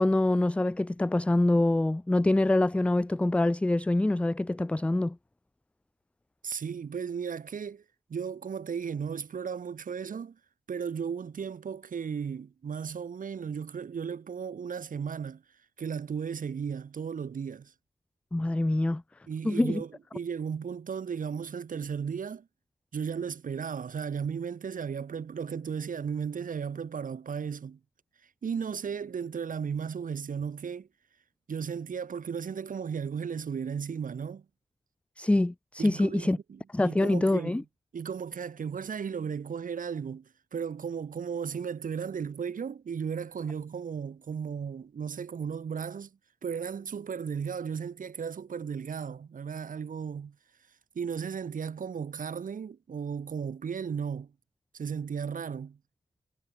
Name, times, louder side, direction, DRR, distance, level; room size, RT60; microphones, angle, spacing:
voice 1, 0.0-5.2 18.3-19.0 19.4-19.8 35.2-36.4 36.7-37.6, left 2 dB, 10° left, 0.3 m, -25 dB
voice 2, 6.4-7.8 8.1-10.4 10.7-15.4 15.8-17.7 19.3-22.5 22.9-27.8 28.4-30.9 31.5-34.4 35.8-37.6 37.9-46.1 46.4-50.3 50.9-54.3 54.7-55.8, right 6 dB, 75° right, 1.4 m, -35 dB
wide cardioid pair, 85°, 14 cm